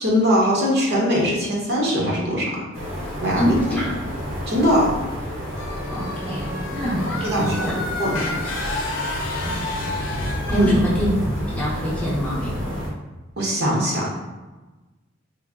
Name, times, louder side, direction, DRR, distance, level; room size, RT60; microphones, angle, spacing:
voice 1, 0.0-2.7 3.2-3.5 4.5-4.9 7.2-7.7 8.0-8.2 10.5-10.7 13.4-14.1, equal, 55° right, -3 dB, 0.9 m, -21 dB
sound 1, 2.7-12.9, equal, 75° right, 1.3 m, -30 dB
voice 2, 3.4-4.0 5.9-8.5 9.4-9.7 10.5-11.1 11.5-12.8, equal, 5° left, -6 dB, 0.7 m, -26 dB
sound 2, 5.6-10.7, left 2 dB, 70° left, 0.6 m, -31 dB
3.7 x 2.0 x 3.6 m, 1.2 s
head